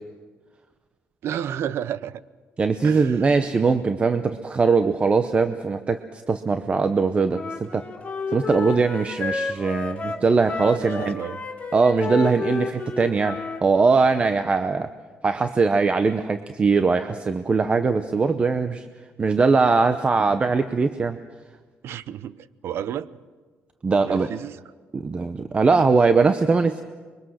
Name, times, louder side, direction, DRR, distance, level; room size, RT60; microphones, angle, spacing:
voice 1, 1.2-2.2 2.8-3.2 10.7-11.4 21.8-23.1 24.1-24.6, right 10 dB, 70° right, 17 dB, 0.7 m, -31 dB
voice 2, 2.6-7.8 8.3-11.2 11.7-14.9 15.2-18.9 19.2-21.2 23.8-24.3 24.9-26.8, right 4 dB, 25° right, 9 dB, 0.8 m, -21 dB
Wind instrument woodwind instrument, 7.3-13.6, left 4 dB, 30° left, 3.1 m, -31 dB
25.5 x 23.0 x 6.5 m, 1.4 s
cardioid pair, 135°, 4 cm